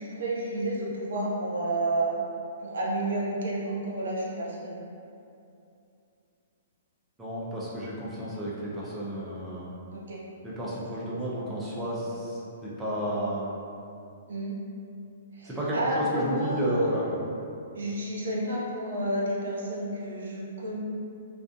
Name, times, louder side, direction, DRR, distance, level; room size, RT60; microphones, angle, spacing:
voice 1, 0.0-2.1 2.6-4.8 9.9-10.2 14.3-14.6 15.3-16.9 17.7-20.8, right 1 dB, 75° right, -5 dB, 0.5 m, -31 dB
voice 2, 7.2-9.8 10.4-13.5 15.4-17.2, equal, 10° right, -8 dB, 0.5 m, -31 dB
2.4 x 2.3 x 2.5 m, 2.6 s
hypercardioid pair, 130°, 0 cm